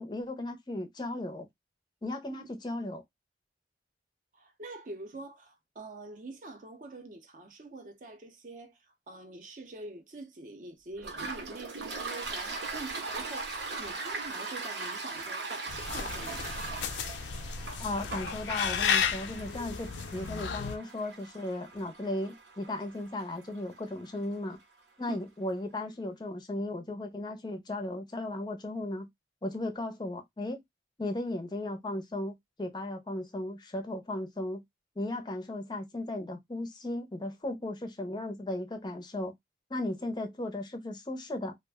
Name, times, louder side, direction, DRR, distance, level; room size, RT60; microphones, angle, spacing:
voice 1, 0.0-1.5 2.0-3.0 17.8-24.6 25.0-29.1 29.4-30.6 31.0-34.6 35.0-39.3 39.7-41.6, left 1 dB, 25° left, 0.5 m, -36 dB
voice 2, 4.3-8.8 9.1-16.5 25.1-25.2, right 2 dB, 45° right, 0.6 m, -45 dB
Toilet flush, 11.0-24.4, right 3 dB, 85° right, 0.8 m, -40 dB
sound 1, 15.7-20.8, left 7 dB, 90° left, 0.4 m, -33 dB
2.4 x 2.1 x 3.3 m
head